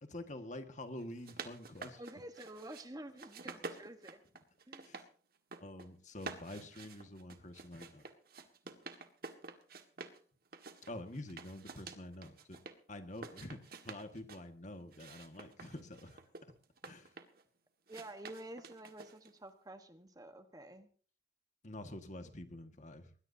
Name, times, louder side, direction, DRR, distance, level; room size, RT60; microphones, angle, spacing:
voice 1, 0.0-2.0 4.8-5.0 5.6-8.1 10.9-12.6 12.9-16.2 16.8-17.1 21.6-23.1, left 1 dB, 40° left, 7 dB, 1.8 m, -47 dB
sound 1, 1.0-2.9 3.2-5.1 5.4-5.9 6.2-10.2 10.5-12.8 13.1-14.4 14.9-17.4 17.9-19.4, right 4 dB, 55° right, 1.8 m, -49 dB
voice 2, 2.0-4.2 4.7-4.9 17.9-20.9, right 1 dB, 20° right, 7 dB, 1.3 m, -49 dB
21.0 x 20.5 x 2.8 m, 0.42 s
head